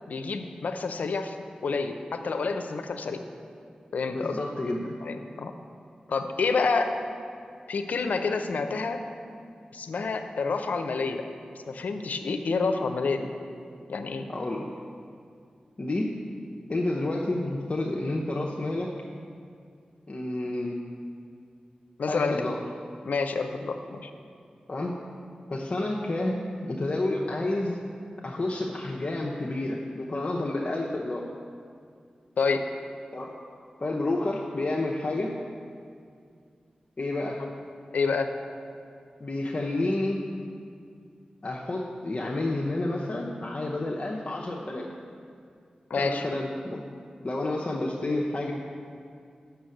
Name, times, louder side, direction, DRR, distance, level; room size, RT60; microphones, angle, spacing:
voice 1, 0.1-1.4 1.6-3.2 3.9-4.4 5.0-5.5 6.1-6.9 7.7-9.0 9.7-11.2 11.7-13.3 13.9-14.3 22.0-22.5 23.0-24.1 32.4-32.6 37.9-38.3 45.9-46.3, left 4 dB, 80° left, 7 dB, 0.6 m, -28 dB
voice 2, 4.1-5.0 14.3-14.7 15.8-16.2 16.7-18.9 20.1-20.8 22.1-22.6 24.7-24.9 25.5-27.8 28.2-31.3 33.1-33.3 33.8-35.4 37.0-37.4 39.2-40.2 41.4-44.9 46.0-46.8 47.2-48.5, left 2 dB, 45° left, -3 dB, 0.8 m, -30 dB
6.9 x 6.6 x 7.7 m, 2.3 s
cardioid pair, 45°, 3 cm